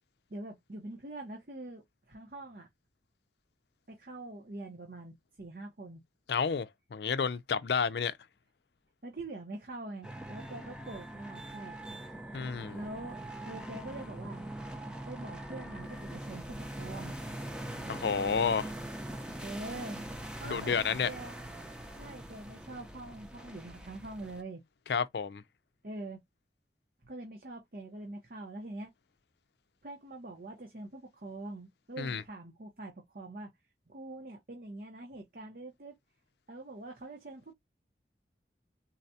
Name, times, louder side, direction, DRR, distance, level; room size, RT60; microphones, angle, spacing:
voice 1, 0.3-2.7 3.9-6.0 9.0-12.0 12.7-14.4 15.1-18.0 19.4-20.8 21.0-21.4 21.9-24.6 25.8-26.2 27.0-28.9 29.8-33.5 33.9-36.0 36.5-37.5, right 2 dB, 55° right, 0.9 m, -44 dB
voice 2, 6.3-8.1 12.3-12.8 17.9-18.7 20.4-21.1 24.9-25.4 32.0-32.2, left 6 dB, 70° left, 0.4 m, -30 dB
sound 1, 10.0-24.4, right 1 dB, 5° right, 0.5 m, -42 dB
4.1 x 2.2 x 2.7 m
head